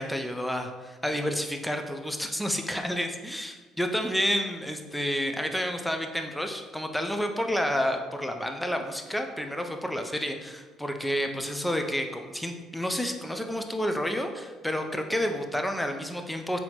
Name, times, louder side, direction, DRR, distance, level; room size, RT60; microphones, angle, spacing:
voice 1, 0.0-16.6, equal, 5° left, 5 dB, 0.4 m, -30 dB
4.1 x 2.7 x 2.9 m, 1.4 s
cardioid pair, 95°, 0 cm